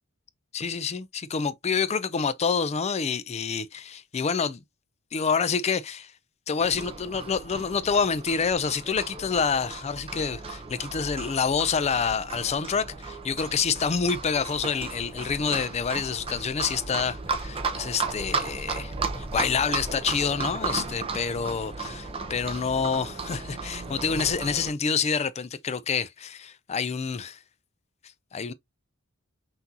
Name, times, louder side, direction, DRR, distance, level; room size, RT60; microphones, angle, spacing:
voice 1, 0.5-4.6 5.1-6.1 6.5-27.4 28.3-28.5, left 6 dB, 30° left, 0.4 m, -27 dB
Livestock farm animals working animals, 6.6-24.7, right 4 dB, 25° right, 0.7 m, -35 dB
5.8 x 2.6 x 2.8 m
head